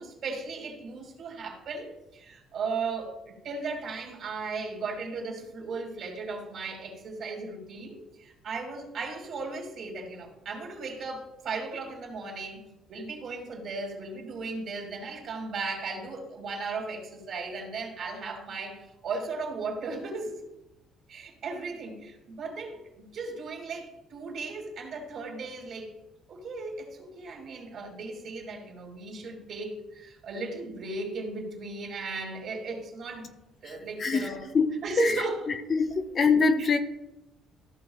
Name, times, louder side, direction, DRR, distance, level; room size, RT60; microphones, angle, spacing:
voice 1, 0.0-12.6 12.9-20.4 21.1-25.9 26.3-33.3 33.6-34.5 34.8-35.4 36.6-36.7, right 3 dB, 50° right, 1 dB, 2.5 m, -36 dB
voice 2, 34.0-35.2 35.7-36.8, left 4 dB, 35° left, 8 dB, 0.6 m, -24 dB
14.5 x 6.4 x 2.4 m, 0.93 s
cardioid pair, 130°, 0 cm